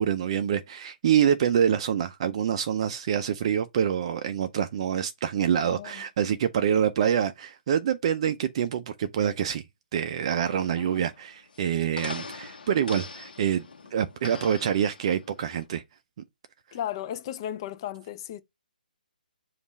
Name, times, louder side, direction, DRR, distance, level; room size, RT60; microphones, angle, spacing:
voice 1, 0.0-9.6 9.9-13.6 13.9-15.8, right 9 dB, 35° right, 0.4 m, -26 dB
voice 2, 5.6-6.0 10.8-11.0 16.7-18.4, left 11 dB, 30° left, 0.5 m, -35 dB
sound 1, 10.4-15.7, left 4 dB, 70° left, 0.8 m, -42 dB
5.2 x 2.4 x 4.2 m
hypercardioid pair, 155°, 5 cm